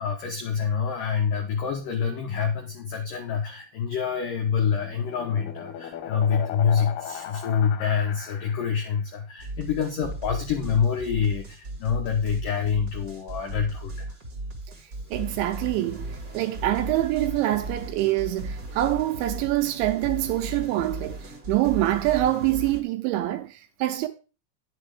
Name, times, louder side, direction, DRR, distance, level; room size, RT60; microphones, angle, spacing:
voice 1, 0.0-14.2, left 7 dB, 90° left, 1.8 m, -26 dB
sound 1, 4.2-9.0, left 10 dB, 65° left, 2.8 m, -38 dB
sound 2, 9.4-22.8, right 2 dB, 50° right, 1.1 m, -36 dB
voice 2, 15.1-16.1 16.3-24.1, right 15 dB, 80° right, 2.8 m, -25 dB
10.5 x 6.9 x 4.9 m
omnidirectional pair, 5.8 m